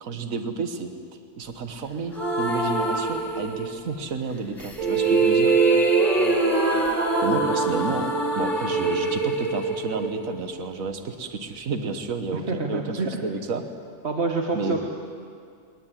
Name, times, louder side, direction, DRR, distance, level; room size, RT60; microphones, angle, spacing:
voice 1, 0.0-0.9 1.4-5.5 7.2-12.4 12.7-13.6 14.5-14.8, right 4 dB, 65° right, 7 dB, 1.7 m, -31 dB
sound 1, 2.1-3.9 4.6-10.7, right 3 dB, 15° left, 3.2 m, -23 dB
voice 2, 12.3-13.1 14.0-14.8, right 3 dB, 45° right, 1 dB, 1.7 m, -28 dB
20.5 x 20.0 x 9.1 m, 2.3 s
omnidirectional pair, 1.6 m